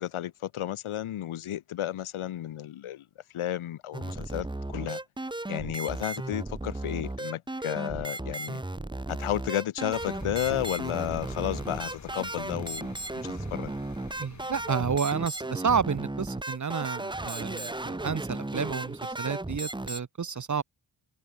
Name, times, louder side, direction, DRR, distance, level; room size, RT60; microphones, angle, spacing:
voice 1, 0.0-3.1 3.3-5.0 5.5-8.6 9.1-12.9 13.2-13.7, left 12 dB, 80° left, 0.8 m, -32 dB
sound 1, 3.9-20.0, right 2 dB, 10° right, 0.9 m, -35 dB
sound 2, 9.9-15.0, left 5 dB, 35° left, 1.4 m, -46 dB
voice 2, 14.2-20.6, right 6 dB, 35° right, 0.8 m, -30 dB
wide cardioid pair, 85°, 49 cm